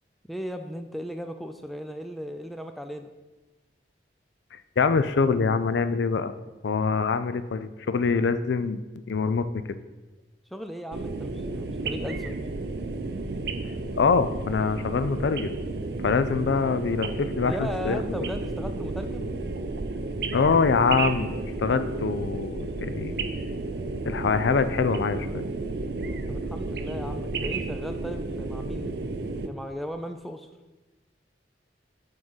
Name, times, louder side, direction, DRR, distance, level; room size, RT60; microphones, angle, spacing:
voice 1, 0.3-3.1 10.5-12.4 17.4-19.3 26.3-29.1 29.4-30.5, equal, ahead, 6 dB, 0.3 m, -36 dB
voice 2, 4.5-6.3 6.6-8.8 9.1-9.6 14.0-15.5 16.0-18.0 20.3-23.2 24.0-25.4, left 5 dB, 80° left, 12 dB, 0.4 m, -24 dB
sound 1, 10.9-29.5, right 3 dB, 60° right, 0.5 m, -32 dB
7.8 x 3.8 x 5.5 m, 1.2 s
head